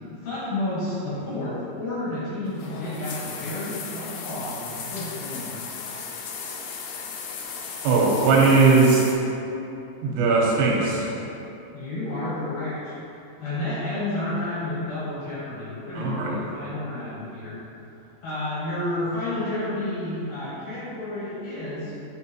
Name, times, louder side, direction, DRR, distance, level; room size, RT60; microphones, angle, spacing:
voice 1, 0.2-5.6 11.7-12.9 13.4-17.6 18.2-21.9, left 1 dB, 60° left, -11 dB, 2.3 m, -31 dB
sound 1, 2.5-9.1, left 5 dB, 80° left, 2.2 m, -36 dB
voice 2, 7.8-9.1 10.0-11.1 16.0-16.4, right 4 dB, 90° right, -3 dB, 3.4 m, -19 dB
9.4 x 4.4 x 2.9 m, 2.9 s
omnidirectional pair, 5.1 m